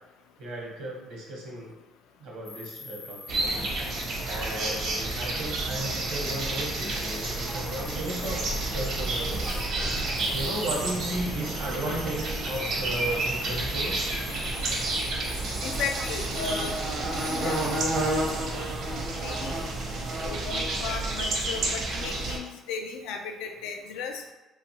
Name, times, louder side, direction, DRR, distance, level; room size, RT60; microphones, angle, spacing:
voice 1, 0.4-1.7 2.2-9.4 10.3-14.0, right 1 dB, 80° right, -3 dB, 1.0 m, -35 dB
sound 1, 2.4-18.6, left 3 dB, 50° left, 0.7 m, -43 dB
sound 2, 3.3-22.4, right 2 dB, 60° right, 0.6 m, -30 dB
sound 3, 3.5-20.9, right 2 dB, 20° right, 0.3 m, -44 dB
voice 2, 15.6-16.8 17.1-18.2 18.5-18.7 19.2-19.6 20.1-24.2, left 5 dB, 90° left, 4 dB, 0.4 m, -36 dB
2.9 x 2.3 x 2.8 m, 1.1 s
cardioid pair, 115°, 0 cm